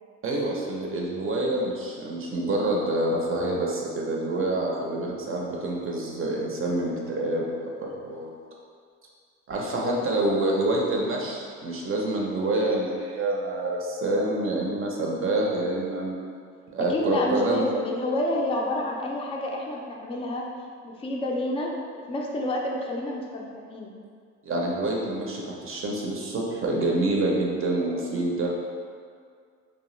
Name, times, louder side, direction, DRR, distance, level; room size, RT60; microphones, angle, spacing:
voice 1, 0.2-8.3 9.5-16.2 16.7-17.6 24.4-28.5, right 2 dB, 45° right, -2 dB, 0.6 m, -27 dB
voice 2, 16.9-20.5 20.8-21.7 22.1-23.9, left 1 dB, 20° left, -1 dB, 0.3 m, -29 dB
2.8 x 2.1 x 3.1 m, 2.1 s
cardioid pair, 90°, 30 cm